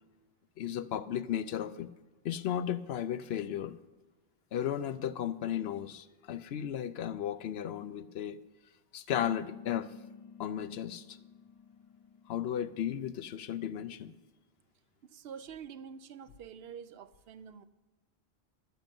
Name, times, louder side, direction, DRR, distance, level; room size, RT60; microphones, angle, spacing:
voice 1, 0.6-1.9 2.2-3.8 4.5-8.4 8.9-9.9 10.4-11.2 12.3-14.1, left 10 dB, 75° left, 0.8 m, -35 dB
sound 1, 9.2-14.1, left 6 dB, 40° left, 0.6 m, -53 dB
voice 2, 15.0-17.7, right 7 dB, 70° right, 0.8 m, -47 dB
12.0 x 10.5 x 5.3 m
omnidirectional pair, 1.1 m